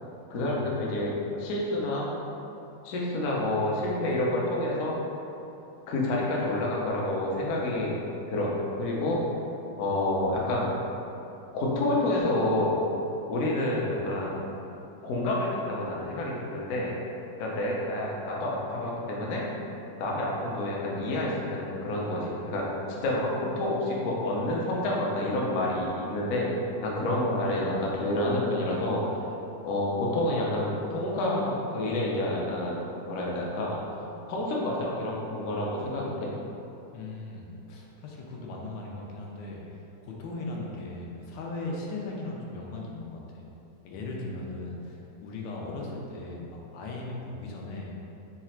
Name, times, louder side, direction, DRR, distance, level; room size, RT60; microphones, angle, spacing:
voice 1, 0.3-1.1 1.4-2.1 2.8-4.9 5.9-8.0 8.3-8.5 8.8-9.2 9.8-10.7 11.5-12.8 13.3-14.4 15.0-16.9 17.4-19.4 20.0-26.5 26.8-29.0 29.6-33.8 34.3-36.3, left 1 dB, 60° left, -4 dB, 0.9 m, -28 dB
voice 2, 36.9-43.4 43.8-47.9, left 2 dB, 85° left, -2 dB, 1.3 m, -38 dB
4.0 x 2.4 x 4.3 m, 2.8 s
omnidirectional pair, 2.0 m